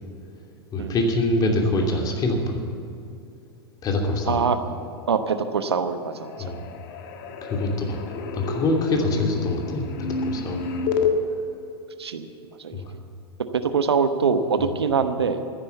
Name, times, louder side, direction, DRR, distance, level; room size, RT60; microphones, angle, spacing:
voice 1, 0.7-2.7 3.8-4.5 6.4-6.6 7.4-8.0 8.3-10.6 12.7-12.9, left 2 dB, 30° left, 1 dB, 2.9 m, -24 dB
voice 2, 4.3-4.6 5.1-6.4 7.7-7.9 12.0-12.3 12.6-12.8 13.5-15.4, right 5 dB, 80° right, 9 dB, 1.1 m, -24 dB
sound 1, 5.4-5.7 6.0-11.1, left 5 dB, 50° left, 1.6 m, -30 dB
14.5 x 10.5 x 8.3 m, 2.6 s
figure-of-eight pair, 95°, 13 cm